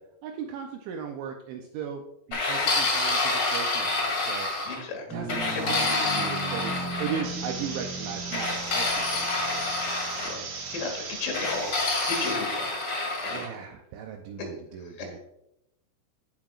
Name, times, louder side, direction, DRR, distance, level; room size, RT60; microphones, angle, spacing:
voice 1, 0.2-2.0 2.3-4.5 5.1-6.7 7.0-8.9 9.1-9.6 13.3-15.2, right 7 dB, 85° right, 3 dB, 2.7 m, -37 dB
sound 1, 2.3-4.8 5.3-7.2 8.3-10.3 11.3-13.5, left 3 dB, 45° left, 2.0 m, -28 dB
voice 2, 4.7-5.3 5.5-5.6 10.2-12.8 13.2-13.6 14.4-14.5 15.0-15.1, left 4 dB, 80° left, 1 dB, 4.6 m, -35 dB
sound 2, 5.1-10.8, right 2 dB, 5° right, 1.1 m, -38 dB
sound 3, 7.2-12.3, right 4 dB, 60° right, 2.9 m, -37 dB
15.0 x 5.6 x 2.4 m, 0.84 s
omnidirectional pair, 6.0 m